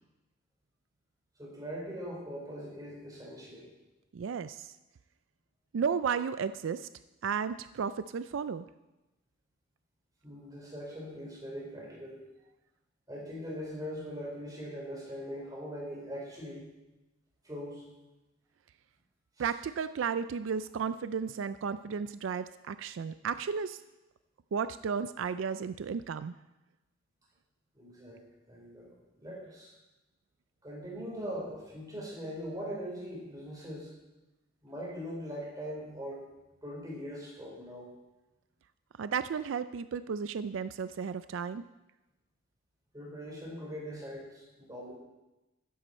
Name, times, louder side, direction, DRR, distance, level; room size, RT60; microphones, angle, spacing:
voice 1, 1.4-3.7 10.2-12.2 13.1-16.7 17.4-17.8 19.4-19.5 27.7-28.2 28.5-29.7 30.6-33.9 34.6-36.3 36.6-37.9 42.9-45.0, equal, 20° right, -3 dB, 4.3 m, -41 dB
voice 2, 4.1-4.7 5.7-6.9 7.2-8.7 19.4-23.8 24.5-26.3 39.0-41.6, right 6 dB, 80° right, 13 dB, 0.4 m, -33 dB
13.5 x 10.5 x 4.4 m, 1.0 s
head